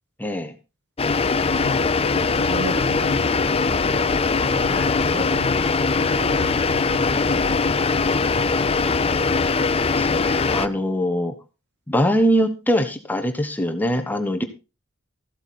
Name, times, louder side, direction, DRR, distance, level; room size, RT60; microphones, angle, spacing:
voice 1, 0.2-0.5 4.7-5.0 10.0-11.3 11.9-14.4, equal, 10° left, 1.0 m, -23 dB
sound 1, 1.0-10.7, left 4 dB, 25° left, 0.5 m, -21 dB
voice 2, 1.5-7.9, equal, 55° right, 2.2 m, -35 dB
14.5 x 8.0 x 4.1 m
head